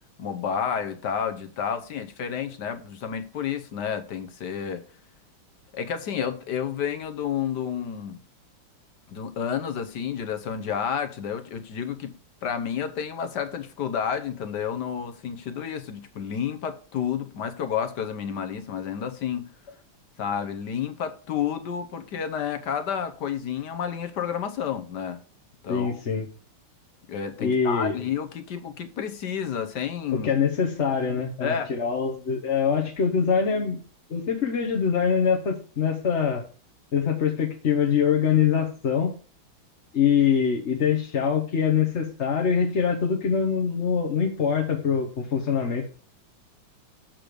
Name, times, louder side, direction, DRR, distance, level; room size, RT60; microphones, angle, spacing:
voice 1, 0.2-4.8 5.7-8.2 9.1-12.1 12.4-19.5 20.2-25.2 25.6-26.0 27.1-30.3 31.4-31.7, left 8 dB, 60° left, 1.3 m, -30 dB
voice 2, 25.7-26.3 27.4-27.9 30.1-33.8 34.1-36.4 36.9-39.1 39.9-45.9, left 7 dB, 40° left, 1.1 m, -24 dB
7.7 x 6.6 x 5.1 m
omnidirectional pair, 2.3 m